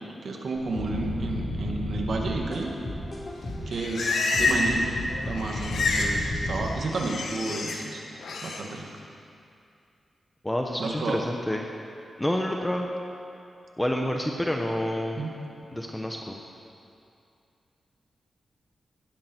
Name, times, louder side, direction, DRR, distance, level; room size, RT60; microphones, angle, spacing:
voice 1, 0.2-2.7 3.7-4.9 5.2-8.1 8.4-8.9 10.8-11.2 15.2-15.4, right 3 dB, 70° right, 1 dB, 2.0 m, -31 dB
sound 1, 0.6-3.8 4.3-6.7, left 1 dB, 45° left, 3.8 m, -33 dB
Livestock farm animals working animals, 3.4-4.9 5.1-6.2 6.4-7.8 8.2-8.6, left 3 dB, 80° left, 1.6 m, -28 dB
voice 2, 10.4-11.7 12.2-12.9 13.8-15.2 15.7-16.4, left 1 dB, 10° left, 1 dB, 1.1 m, -28 dB
16.5 x 12.5 x 4.6 m, 2.5 s
cardioid pair, 65°, 0 cm